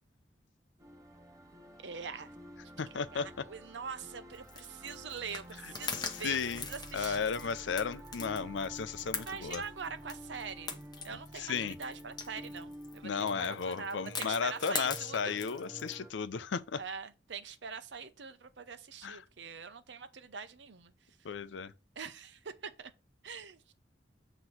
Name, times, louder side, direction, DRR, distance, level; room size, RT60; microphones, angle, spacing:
sound 1, 0.8-16.1, right 1 dB, 20° right, 0.7 m, -50 dB
voice 1, 1.8-2.3 2.8-7.6 9.2-15.4 16.8-20.9 22.0-22.9 23.2-23.7, right 6 dB, 75° right, 0.7 m, -44 dB
voice 2, 2.8-3.3 5.9-6.6 6.9-9.6 11.4-11.8 13.0-16.8 19.0-19.2 21.2-21.7, left 6 dB, 85° left, 0.5 m, -34 dB
sound 2, 4.3-16.0, left 5 dB, 25° left, 0.8 m, -42 dB
7.9 x 3.0 x 5.7 m
head